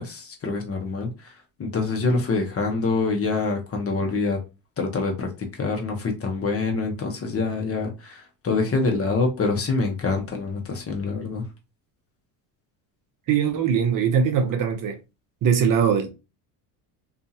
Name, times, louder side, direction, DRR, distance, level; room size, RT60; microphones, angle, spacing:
voice 1, 0.0-1.3 1.6-4.4 4.8-11.4, left 3 dB, 30° left, 0.9 m, -26 dB
voice 2, 13.3-15.0 15.4-16.1, right 7 dB, 45° right, 0.6 m, -21 dB
2.6 x 2.4 x 2.7 m
supercardioid pair, 100°, 45 cm